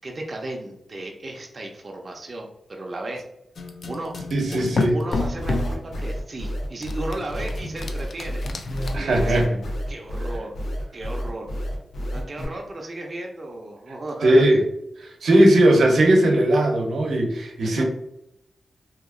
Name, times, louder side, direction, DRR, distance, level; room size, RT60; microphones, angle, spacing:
voice 1, 0.0-3.2 3.9-4.1 4.5-4.6 4.9-8.4 9.0-9.4 9.9-10.6 10.9-11.5 12.1-14.6 17.6-17.8, right 2 dB, 40° right, 1 dB, 0.5 m, -34 dB
sound 1, 3.6-5.8 6.8-8.9, left 3 dB, 60° left, 0.4 m, -30 dB
voice 2, 4.3-5.0 8.9-9.6 14.2-14.6 15.2-17.8, right 1 dB, 85° right, 1 dB, 0.7 m, -18 dB
sound 2, 5.1-12.4, equal, 85° left, 0.8 m, -29 dB
2.9 x 2.4 x 3.6 m, 0.82 s
wide cardioid pair, 100°, 0 cm